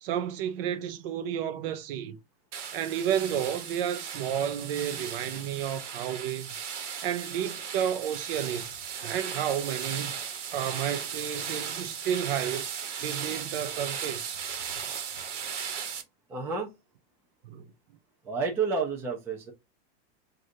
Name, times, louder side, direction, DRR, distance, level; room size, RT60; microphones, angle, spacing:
voice 1, 0.0-2.2 2.7-6.5 7.0-10.2 10.5-14.4 17.4-17.7, right 9 dB, 55° right, 0.6 m, -31 dB
sound 1, 2.5-16.0, right 7 dB, 90° right, 1.2 m, -36 dB
voice 2, 16.3-16.7 18.2-19.5, right 5 dB, 5° right, 0.4 m, -30 dB
6.3 x 2.5 x 2.6 m
supercardioid pair, 155°, 35 cm